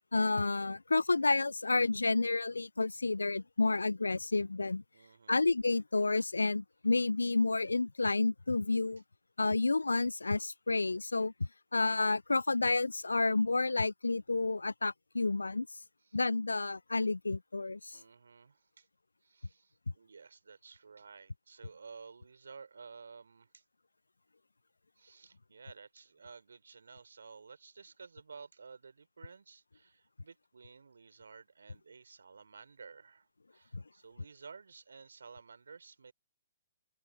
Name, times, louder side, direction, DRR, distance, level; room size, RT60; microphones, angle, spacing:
voice 1, 0.1-4.8 5.3-9.0 9.4-11.3 11.7-15.7 16.1-18.0 33.7-33.8, left 3 dB, 85° left, 0.3 m, -30 dB
voice 2, 4.9-5.4 16.0-16.2 17.9-18.9 19.2-23.6 25.0-36.1, right 5 dB, 75° right, 4.3 m, -53 dB
open air
figure-of-eight pair, 125°, 0 cm